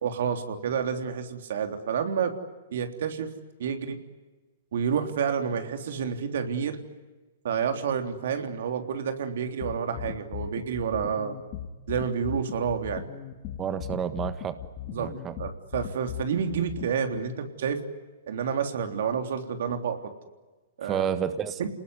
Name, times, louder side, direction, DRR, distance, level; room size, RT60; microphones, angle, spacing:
voice 1, 0.0-2.3 2.7-3.3 3.6-4.0 4.7-6.8 7.4-11.4 11.9-13.1 14.9-15.1 15.4-17.8 18.3-20.1 20.8-21.1 21.6-21.7, right 7 dB, 65° right, 6 dB, 3.4 m, -29 dB
sound 1, 9.6-17.2, left 10 dB, 40° left, 2.3 m, -38 dB
voice 2, 13.6-14.5 15.0-15.3 20.8-21.6, right 8 dB, 20° right, 11 dB, 1.5 m, -30 dB
29.0 x 20.0 x 9.6 m, 1.2 s
hypercardioid pair, 135°, 0 cm